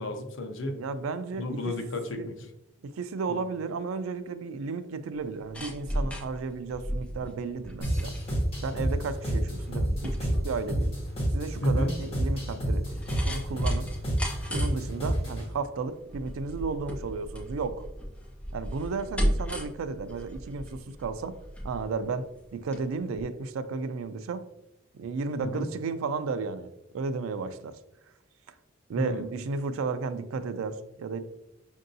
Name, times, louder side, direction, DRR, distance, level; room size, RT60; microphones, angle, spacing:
voice 1, 0.0-0.8 1.4-2.3 3.3-3.4 11.6-11.9 25.4-25.7 29.0-29.3, left 1 dB, 70° left, 5 dB, 0.6 m, -32 dB
voice 2, 0.7-1.7 2.2-2.3 2.8-8.1 8.6-10.9 11.3-12.9 13.2-13.9 14.5-17.9 18.5-21.4 21.6-22.3 22.5-24.4 24.9-26.7 26.9-27.7 28.9-31.2, right 4 dB, 85° right, 12 dB, 0.3 m, -33 dB
sound 1, 5.2-22.8 23.1-23.2, equal, 5° left, 0.5 m, -36 dB
sound 2, 7.8-15.5, right 1 dB, 30° left, 1.5 m, -29 dB
5.3 x 2.6 x 2.6 m, 0.88 s
head